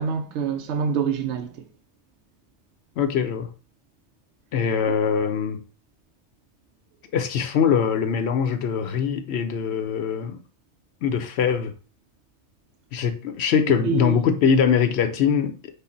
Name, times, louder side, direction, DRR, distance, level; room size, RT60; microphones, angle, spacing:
voice 1, 0.0-1.6 4.8-5.0 13.8-14.2, right 6 dB, 75° right, 0.8 m, -26 dB
voice 2, 3.0-3.5 4.5-5.6 7.1-10.4 11.0-11.7 12.9-15.6, left 7 dB, 70° left, 0.8 m, -22 dB
5.5 x 2.1 x 3.8 m
omnidirectional pair, 1.2 m